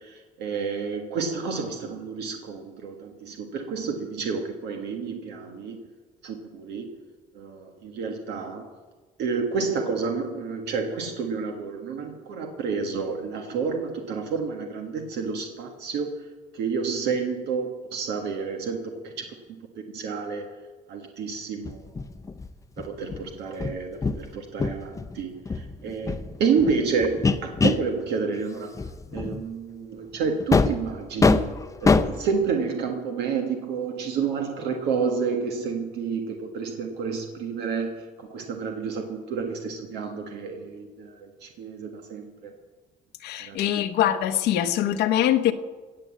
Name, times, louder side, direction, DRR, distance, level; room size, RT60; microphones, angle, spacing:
voice 1, 0.0-5.8 6.2-6.9 7.3-8.7 9.2-19.3 19.9-20.5 20.9-21.8 22.8-28.7 29.1-31.5 31.8-42.5 43.4-43.8, right 5 dB, 80° right, 1.6 m, -30 dB
sound 1, 21.7-24.3 24.6-25.2 25.5-27.9 28.4-28.5 28.8-29.4 30.4-30.9 31.2-32.3, left 4 dB, 20° left, 0.6 m, -24 dB
voice 2, 43.2-45.5, left 11 dB, 80° left, 0.9 m, -23 dB
17.0 x 7.8 x 7.7 m
cardioid pair, 110°, 17 cm